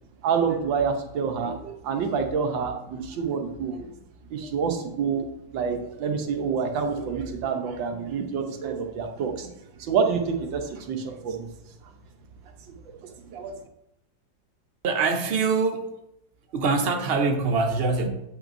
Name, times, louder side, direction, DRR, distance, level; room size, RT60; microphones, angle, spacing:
voice 1, 0.2-3.9 4.3-5.3 5.5-9.5 9.8-11.5 12.9-13.0 13.3-13.5, right 6 dB, 85° right, 4 dB, 1.7 m, -27 dB
voice 2, 14.8-15.9 16.5-18.1, right 4 dB, 50° right, 5 dB, 0.7 m, -24 dB
9.0 x 7.5 x 2.6 m, 0.84 s
omnidirectional pair, 2.0 m